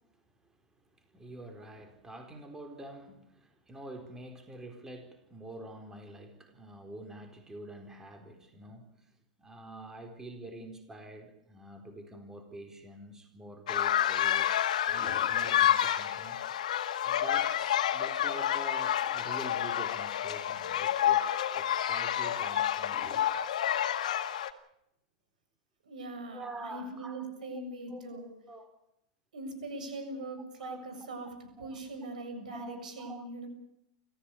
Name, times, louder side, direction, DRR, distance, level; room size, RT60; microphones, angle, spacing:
voice 1, 1.1-9.1 9.4-16.4 17.0-23.3 26.2-27.6 27.9-28.7 30.6-31.2 31.6-31.8 32.5-33.3, right 1 dB, 10° right, 5 dB, 4.2 m, -46 dB
sound 1, 13.7-24.5, left 11 dB, 70° left, 2.0 m, -29 dB
voice 2, 25.8-28.3 29.3-31.3 31.6-33.5, right 2 dB, 80° right, 7 dB, 7.3 m, -41 dB
26.0 x 15.0 x 8.5 m, 0.80 s
hypercardioid pair, 115°, 4 cm